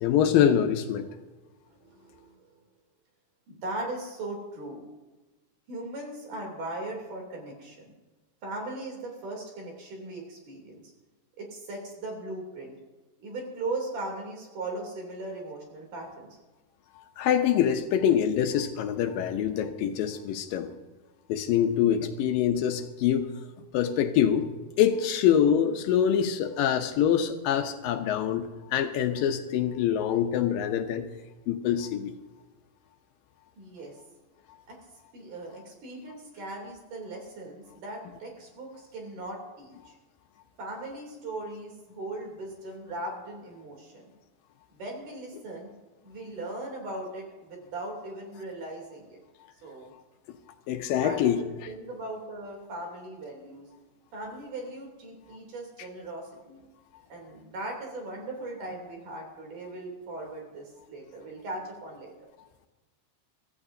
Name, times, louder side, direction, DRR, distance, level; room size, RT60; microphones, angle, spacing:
voice 1, 0.0-1.1 17.2-20.7 21.3-23.3 23.7-24.5 24.8-31.1 31.5-32.1 50.7-51.4, left 9 dB, 75° left, 6 dB, 2.5 m, -25 dB
voice 2, 1.7-2.5 3.5-4.8 5.7-7.9 8.4-10.8 11.4-12.8 13.2-16.4 33.6-34.0 34.7-34.8 35.1-39.9 40.6-44.1 44.7-45.7 46.0-49.2 49.6-49.9 51.0-53.7 54.1-56.6 57.1-62.1, right 2 dB, 60° right, 0 dB, 4.4 m, -38 dB
24.5 x 14.5 x 2.7 m, 1.2 s
omnidirectional pair, 4.2 m